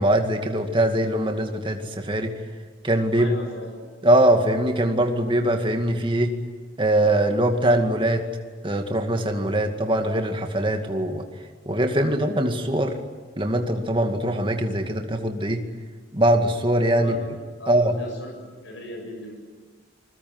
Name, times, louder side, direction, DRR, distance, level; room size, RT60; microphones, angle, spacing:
voice 1, 0.0-2.4 2.8-3.3 4.0-6.3 6.8-8.3 8.6-11.2 11.7-13.0 13.4-15.6 16.1-17.1 17.7-17.9, right 1 dB, 25° right, 5 dB, 2.3 m, -22 dB
voice 2, 3.1-3.8 17.0-17.2 17.6-18.4 18.6-19.4, left 1 dB, 85° left, 2 dB, 6.9 m, -37 dB
28.0 x 21.5 x 9.6 m, 1.5 s
head